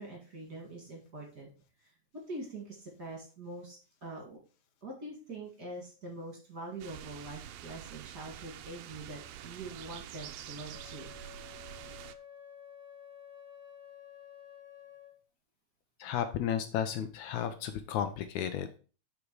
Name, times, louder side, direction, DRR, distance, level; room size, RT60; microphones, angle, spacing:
voice 1, 0.0-1.5 1.8-1.9 2.3-4.4 4.8-11.1, right 2 dB, 35° right, -1 dB, 2.2 m, -44 dB
sound 1, 6.8-12.1, right 11 dB, 85° right, 1.5 m, -47 dB
Wind instrument woodwind instrument, 10.7-15.2, left 8 dB, 55° left, 1.4 m, -52 dB
voice 2, 16.0-18.8, left 9 dB, 75° left, 9 dB, 1.9 m, -33 dB
6.9 x 5.2 x 4.7 m, 0.36 s
omnidirectional pair, 3.6 m